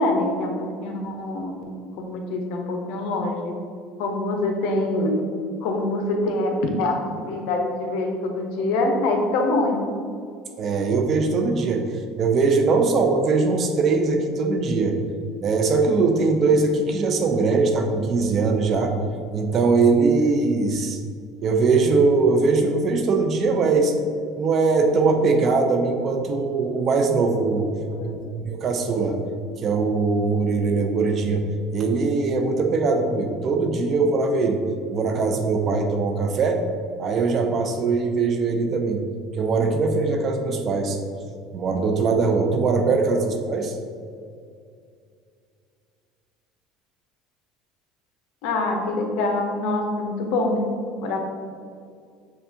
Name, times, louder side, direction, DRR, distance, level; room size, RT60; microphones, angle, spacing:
voice 1, 0.0-3.5 4.0-5.2 5.6-9.8 15.2-15.4 27.9-28.2 48.4-50.7 51.0-51.2, left 2 dB, 75° left, 2 dB, 0.7 m, -25 dB
voice 2, 10.6-11.8 12.2-15.0 15.4-18.9 19.3-21.0 21.4-23.9 24.4-27.7 28.0-29.2 29.6-31.4 31.7-34.6 34.9-36.6 37.0-39.0 39.3-41.0 41.5-43.8, right 4 dB, 40° right, 4 dB, 0.6 m, -21 dB
6.8 x 2.4 x 2.7 m, 2.3 s
supercardioid pair, 115°, 0 cm